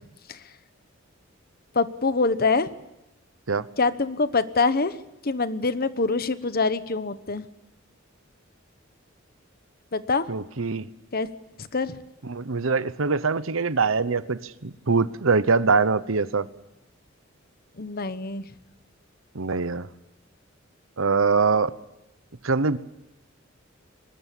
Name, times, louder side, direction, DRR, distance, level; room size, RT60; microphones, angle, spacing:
voice 1, 1.7-2.7 3.8-4.9 5.2-7.5 9.9-10.3 11.1-11.3 11.7-12.0 17.8-18.4, left 4 dB, 50° left, 13 dB, 1.1 m, -24 dB
voice 2, 10.3-10.9 12.2-16.5 19.3-19.9 21.0-21.7 22.4-22.8, right 4 dB, 75° right, 15 dB, 1.0 m, -23 dB
23.0 x 20.0 x 8.4 m, 0.92 s
head